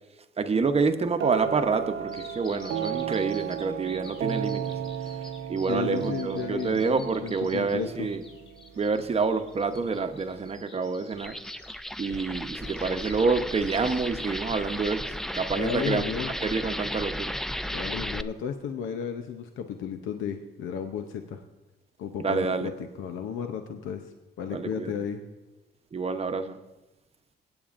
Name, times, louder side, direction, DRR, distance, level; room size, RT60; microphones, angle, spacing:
voice 1, 0.4-4.6 5.5-8.2 8.7-11.4 12.0-16.0 16.4-17.3 22.2-22.7 24.5-24.9 25.9-26.6, right 4 dB, 30° right, 8 dB, 0.9 m, -27 dB
sound 1, 1.2-8.9, right 9 dB, 85° right, 0.8 m, -33 dB
Bird vocalization bird call bird song, 2.1-15.1, left 2 dB, 30° left, 4.5 m, -49 dB
voice 2, 5.7-8.1 15.6-16.3 17.7-21.4 22.0-22.7 23.0-25.2, left 7 dB, 80° left, 7 dB, 0.7 m, -33 dB
sound 2, 11.1-18.2, equal, ahead, 0.3 m, -34 dB
24.0 x 8.8 x 2.5 m, 1.1 s
cardioid pair, 90°, 20 cm